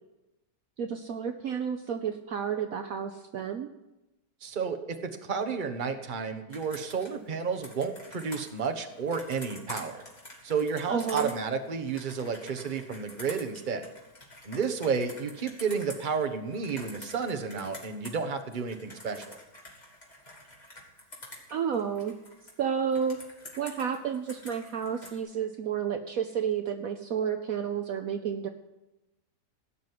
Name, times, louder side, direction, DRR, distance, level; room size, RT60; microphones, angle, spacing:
voice 1, 0.8-3.7 10.9-11.3 21.5-22.1 22.6-23.2 23.6-28.5, right 7 dB, 65° right, 7 dB, 1.1 m, -31 dB
voice 2, 4.4-10.0 10.4-13.9 14.4-19.4, right 5 dB, 30° right, 7 dB, 1.1 m, -31 dB
Computer keyboard, 6.5-18.2 18.5-22.5 22.9-25.1, left 1 dB, 25° left, 3.1 m, -47 dB
17.0 x 6.3 x 9.6 m, 0.98 s
omnidirectional pair, 1.8 m